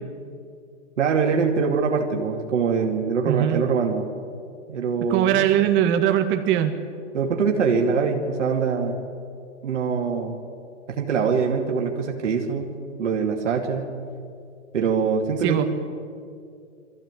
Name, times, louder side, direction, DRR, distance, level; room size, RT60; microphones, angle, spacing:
voice 1, 1.0-4.1 4.7-5.5 7.1-9.0 9.6-10.4 10.9-12.7 13.0-13.9 14.7-15.6, right 5 dB, 80° right, 0 dB, 2.7 m, -23 dB
voice 2, 3.3-3.6 5.1-6.7 15.4-15.6, right 11 dB, 30° right, 6 dB, 2.0 m, -20 dB
21.5 x 15.0 x 9.2 m, 2.3 s
hypercardioid pair, 130°, 36 cm